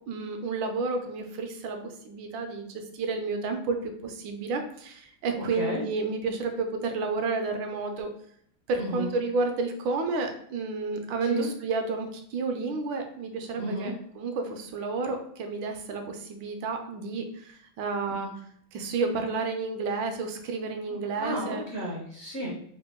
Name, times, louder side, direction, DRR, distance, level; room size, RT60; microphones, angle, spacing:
voice 1, 0.1-8.1 8.7-18.3 18.7-21.6, right 4 dB, 75° right, 5 dB, 1.3 m, -31 dB
voice 2, 5.4-5.8 8.8-9.1 11.3-11.5 13.6-14.0 18.1-18.3 21.2-22.5, equal, 60° right, -4 dB, 0.7 m, -33 dB
3.7 x 2.1 x 3.5 m, 0.65 s
omnidirectional pair, 2.2 m